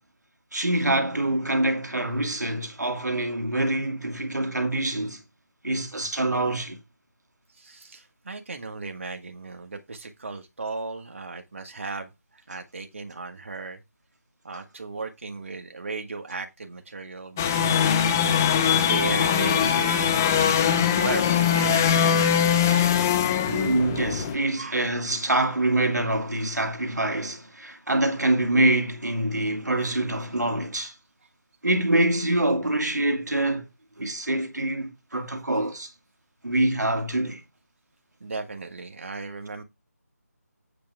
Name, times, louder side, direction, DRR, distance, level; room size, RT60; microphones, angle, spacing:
voice 1, 0.5-5.2 5.6-6.8 14.5-14.6 23.4-30.9 31.6-33.6 34.0-35.9 36.4-37.4, right 1 dB, 90° right, 2.5 m, -25 dB
voice 2, 7.5-13.8 14.4-18.0 18.6-20.2 21.0-22.6 24.6-24.8 35.1-35.2 38.2-39.6, right 3 dB, 50° right, 1.5 m, -36 dB
sound 1, 17.4-24.4, left 8 dB, 10° left, 0.5 m, -21 dB
8.5 x 6.9 x 3.4 m
figure-of-eight pair, 170°, 9 cm